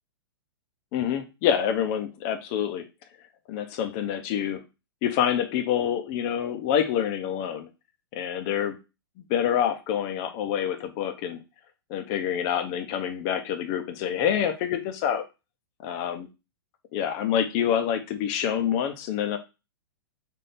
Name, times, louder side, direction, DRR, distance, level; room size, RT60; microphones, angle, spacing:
voice 1, 0.9-2.8 3.5-4.6 5.0-7.7 8.1-8.8 9.3-11.4 11.9-15.2 15.8-16.2 16.9-19.4, left 9 dB, 40° left, 8 dB, 0.7 m, -27 dB
3.6 x 2.7 x 4.2 m, 0.28 s
hypercardioid pair, 135°, 13 cm